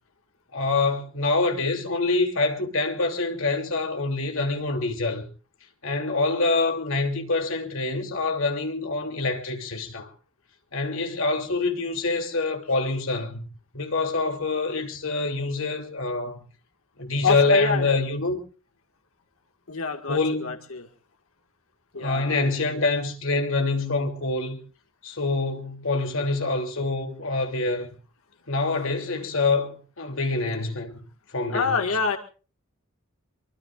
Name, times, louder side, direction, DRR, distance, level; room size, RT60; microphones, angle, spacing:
voice 1, 0.5-5.2 5.8-10.1 10.7-13.5 13.7-16.5 17.0-18.4 20.1-20.6 21.9-24.6 25.0-27.9 28.5-31.0 31.3-31.8, left 3 dB, 70° left, 3.0 m, -26 dB
voice 2, 17.2-18.0 19.7-20.9 21.9-22.4 31.5-32.2, left 5 dB, 85° left, 1.9 m, -27 dB
24.0 x 24.0 x 2.5 m
head